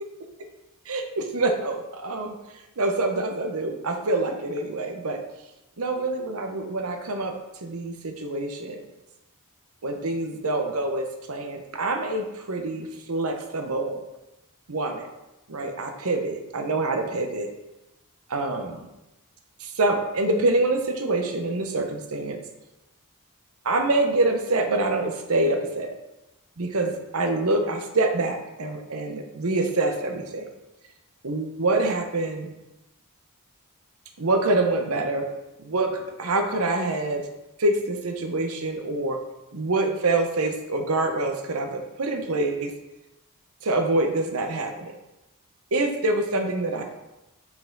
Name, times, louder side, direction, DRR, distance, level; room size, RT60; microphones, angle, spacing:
voice 1, 0.9-2.3 2.8-5.2 5.8-7.3 7.6-8.8 9.8-14.0 14.7-15.1 15.5-17.5 18.3-18.9 19.6-22.4 23.6-25.9 26.6-30.5 31.2-32.5 34.2-35.2 35.6-37.2 37.6-39.2 39.5-42.7 43.6-44.9 45.7-46.8, right 2 dB, 70° right, 4 dB, 0.9 m, -26 dB
5.5 x 4.9 x 3.9 m, 0.97 s
head